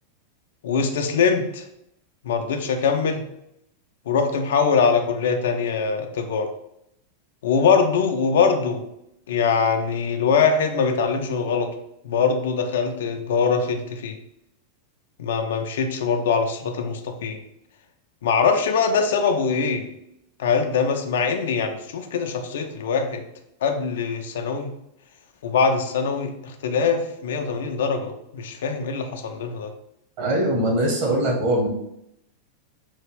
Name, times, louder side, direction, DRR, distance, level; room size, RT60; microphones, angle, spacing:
voice 1, 0.6-1.6 2.2-3.2 4.1-6.5 7.4-8.8 9.3-11.7 12.0-14.2 15.2-17.4 18.2-19.9 20.4-23.2 23.6-24.7 25.4-29.7, left 5 dB, 60° left, 5 dB, 0.4 m, -22 dB
voice 2, 30.2-31.7, right 1 dB, 45° right, -1 dB, 1.2 m, -21 dB
3.3 x 2.4 x 3.3 m, 0.79 s
figure-of-eight pair, 90°, 0 cm